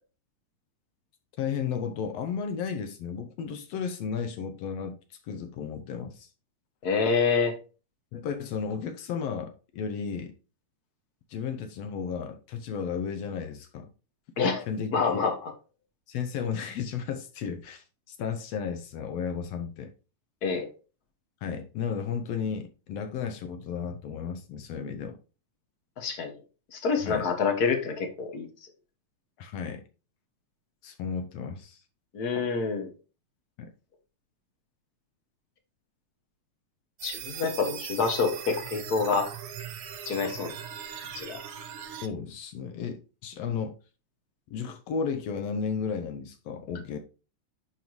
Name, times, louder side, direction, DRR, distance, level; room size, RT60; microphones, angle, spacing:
voice 1, 1.4-6.3 8.1-10.3 11.3-13.9 14.7-15.2 16.1-19.9 21.4-25.2 27.0-27.3 29.4-29.8 30.8-31.8 33.6-33.7 42.0-43.7 44.5-47.0, left 6 dB, 70° left, 1.7 m, -34 dB
voice 2, 6.8-7.5 14.4-14.6 14.9-15.5 20.4-20.7 26.0-26.3 26.7-28.5 32.1-32.9 37.0-39.3 40.0-40.5 41.1-41.4, left 5 dB, 55° left, 1.0 m, -27 dB
sound 1, 37.0-42.1, right 9 dB, 65° right, 1.6 m, -40 dB
10.5 x 4.4 x 3.0 m
omnidirectional pair, 3.3 m